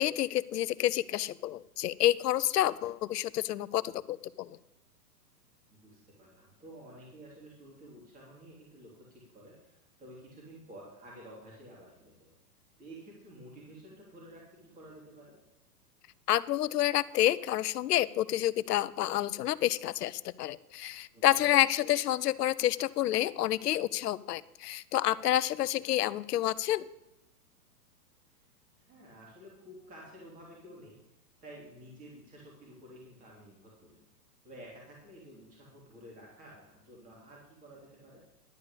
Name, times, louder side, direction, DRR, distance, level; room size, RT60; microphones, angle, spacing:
voice 1, 0.0-4.6 16.3-26.9, left 13 dB, 75° left, 17 dB, 0.7 m, -29 dB
voice 2, 5.7-12.3 12.8-15.4 21.1-21.2 25.7-25.8 28.3-28.5 28.7-31.0 31.4-34.0 34.4-38.2, right 1 dB, 15° right, -3 dB, 3.1 m, -51 dB
11.0 x 5.3 x 8.3 m, 0.91 s
hypercardioid pair, 150°, 47 cm